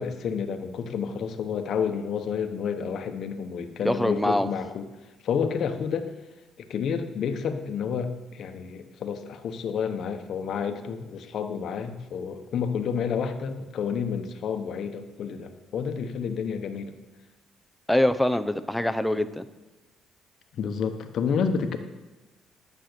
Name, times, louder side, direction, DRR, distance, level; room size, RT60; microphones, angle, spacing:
voice 1, 0.0-4.9 5.2-6.1 6.6-16.9 20.5-21.8, left 6 dB, 60° left, 7 dB, 1.1 m, -30 dB
voice 2, 3.8-4.5 17.9-19.4, left 1 dB, 5° left, 9 dB, 0.7 m, -24 dB
10.5 x 7.5 x 6.7 m, 1.1 s
cardioid pair, 105°, 0 cm